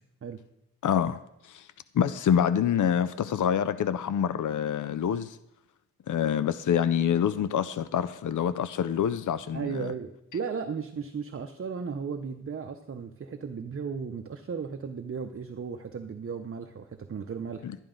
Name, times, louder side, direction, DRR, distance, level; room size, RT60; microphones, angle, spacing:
voice 1, 0.8-1.2 1.4-1.7 1.9-5.4 6.1-9.9 17.6-17.8, left 8 dB, 80° left, 13 dB, 0.5 m, -26 dB
voice 2, 9.5-17.7, right 6 dB, 45° right, 6 dB, 0.6 m, -35 dB
12.0 x 10.5 x 3.8 m, 0.87 s
wide cardioid pair, 125°, 30 cm